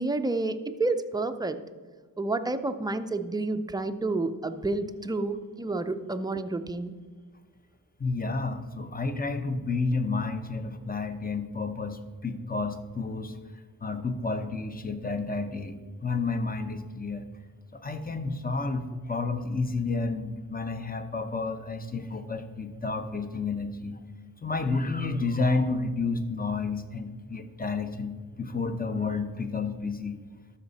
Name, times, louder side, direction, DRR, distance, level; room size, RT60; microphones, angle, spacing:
voice 1, 0.0-1.6 2.2-6.9, right 2 dB, 10° right, 9 dB, 0.5 m, -29 dB
voice 2, 8.0-13.4 13.8-17.3 17.7-24.0 24.4-30.2, left 3 dB, 25° left, 8 dB, 0.8 m, -31 dB
13.0 x 5.7 x 4.1 m, 1.5 s
wide cardioid pair, 75°, 37 cm